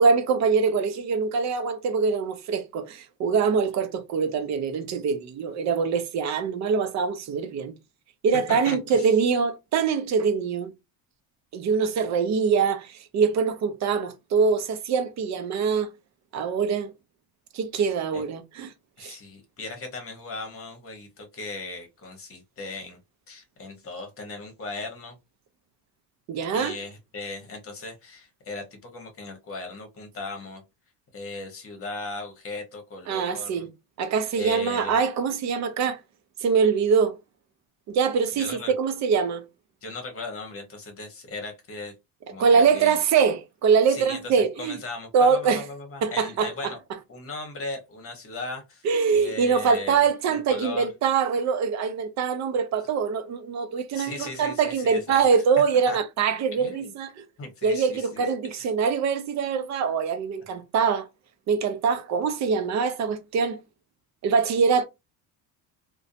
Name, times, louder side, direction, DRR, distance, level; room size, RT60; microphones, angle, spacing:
voice 1, 0.0-7.7 8.2-10.7 11.5-15.9 16.3-16.9 17.5-18.7 19.0-19.2 26.3-26.8 33.1-33.7 34.0-36.0 36.4-37.2 37.9-39.4 42.4-44.8 45.1-45.6 46.0-46.5 48.8-57.1 57.6-61.1 61.5-63.6 64.2-64.8, right 5 dB, 40° right, 0.5 m, -23 dB
voice 2, 8.5-9.1 17.7-18.2 19.0-23.0 23.3-25.2 26.5-30.6 31.1-33.6 34.3-34.9 38.4-38.7 39.8-41.9 42.3-43.0 43.9-46.8 47.1-50.0 50.3-50.9 53.9-55.4 55.9-56.0 56.6-56.9 57.4-58.7, left 3 dB, 30° left, 1.0 m, -38 dB
2.6 x 2.2 x 2.5 m
cardioid pair, 130°, 43 cm